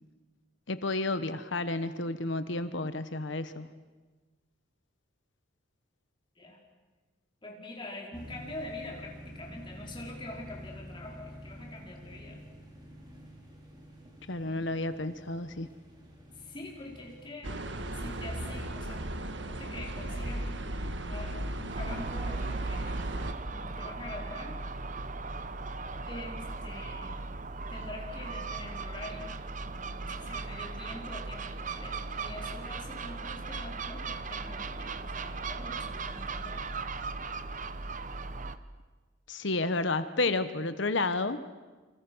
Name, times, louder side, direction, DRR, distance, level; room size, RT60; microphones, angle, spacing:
voice 1, 0.7-3.7 14.3-15.7 39.3-41.4, left 2 dB, 60° left, 11 dB, 1.1 m, -31 dB
voice 2, 7.4-12.4 14.4-15.0 16.3-19.1 19.5-20.6 21.1-23.1 23.5-24.5 26.1-27.1 27.7-29.4 29.8-36.7, left 2 dB, 25° left, -1 dB, 4.7 m, -45 dB
sound 1, 8.1-17.3, equal, 20° right, 4.5 m, -48 dB
sound 2, 17.4-23.3, right 1 dB, 60° right, 1.6 m, -35 dB
Gull seagull, 21.7-38.6, right 3 dB, 40° right, 0.9 m, -38 dB
29.5 x 25.5 x 6.3 m, 1.3 s
head